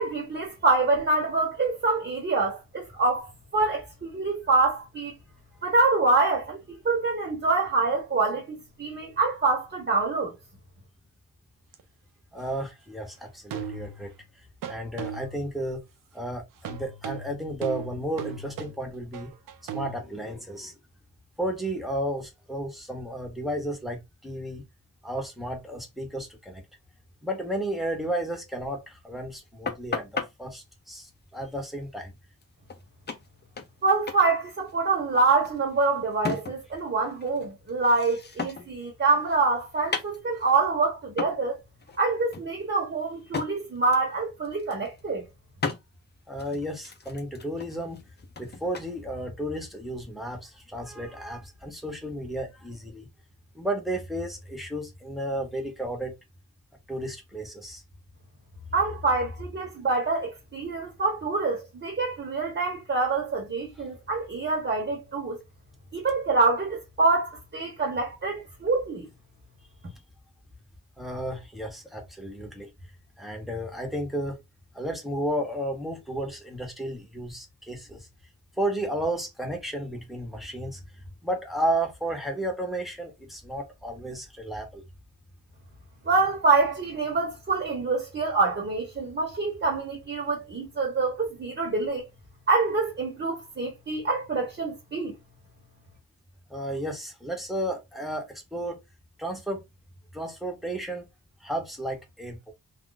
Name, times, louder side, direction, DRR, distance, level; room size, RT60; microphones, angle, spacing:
voice 1, 0.0-5.1 5.6-8.5 8.8-10.3 33.8-41.6 42.0-45.3 58.7-65.4 65.9-69.1 86.0-92.1 92.5-95.1, right 3 dB, 35° right, 1.0 m, -26 dB
sound 1, 11.7-11.8 13.5-14.2 14.6-15.5 16.6-20.0, right 7 dB, 85° right, 0.6 m, -37 dB
voice 2, 12.3-14.1 14.7-15.8 16.1-19.3 19.7-20.7 21.4-24.6 25.0-26.6 27.2-32.1 46.3-48.0 48.4-53.1 53.5-56.2 56.9-57.8 71.0-72.7 73.2-74.4 74.7-78.1 78.6-80.8 81.2-84.8 96.5-98.8 99.2-99.6 100.1-101.1 101.4-102.5, right 1 dB, ahead, 1.0 m, -33 dB
sound 2, 29.7-30.3 32.4-32.5 32.7-32.8 33.1-33.8 34.1-34.3 34.5-36.8 37.1-38.8 39.1-40.6 41.2-41.4 41.8-42.0 42.3-43.5 43.9-44.1 44.4-45.0 45.6-45.8 46.4-48.9, left 4 dB, 30° left, 0.7 m, -35 dB
2.5 x 2.2 x 3.8 m
cardioid pair, 85°, 32 cm